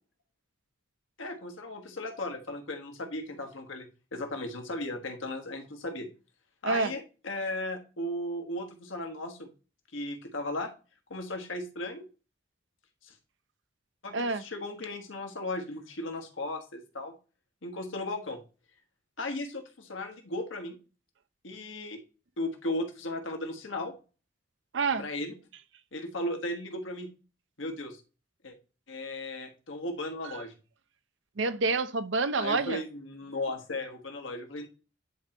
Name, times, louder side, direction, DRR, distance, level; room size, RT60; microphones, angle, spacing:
voice 1, 1.2-6.1 6.6-9.5 9.9-10.7 11.1-12.1 13.0-13.1 14.0-17.1 17.6-18.4 19.2-20.8 21.4-22.0 22.4-23.9 25.0-25.3 25.9-27.1 27.6-28.0 28.4-28.5 28.9-30.5 32.4-34.7, left 2 dB, 85° left, 1.5 m, -36 dB
voice 2, 14.1-14.4 24.7-25.1 31.4-32.8, right 3 dB, 75° right, 0.6 m, -28 dB
10.0 x 4.4 x 2.9 m
head